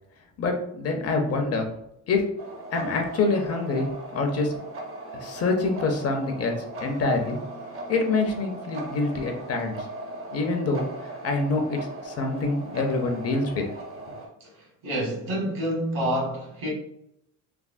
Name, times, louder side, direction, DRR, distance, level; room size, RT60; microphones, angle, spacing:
voice 1, 0.4-1.7 2.1-2.2 2.7-4.5 5.1-7.4 7.9-9.8 10.3-10.9 11.2-13.6 14.1-14.2, left 3 dB, 45° left, 0.6 m, -26 dB
sound 1, 2.4-14.3, right 2 dB, 40° right, 0.6 m, -38 dB
voice 2, 14.8-16.7, equal, 70° right, 1.4 m, -27 dB
3.3 x 2.0 x 2.4 m
cardioid pair, 125°, 34 cm